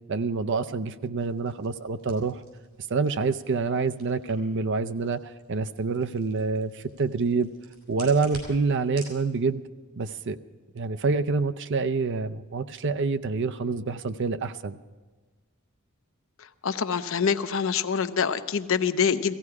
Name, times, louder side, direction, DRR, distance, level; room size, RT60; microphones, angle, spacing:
voice 1, 0.1-2.4 2.9-5.2 5.5-7.5 7.9-9.6 10.0-10.4 10.7-14.8, right 4 dB, 60° right, 11 dB, 0.6 m, -27 dB
Chicken Bone Break, 1.2-9.2, right 2 dB, 90° right, 6.3 m, -50 dB
voice 2, 16.6-19.4, left 6 dB, 70° left, 10 dB, 0.7 m, -25 dB
17.0 x 15.5 x 4.8 m, 1.3 s
head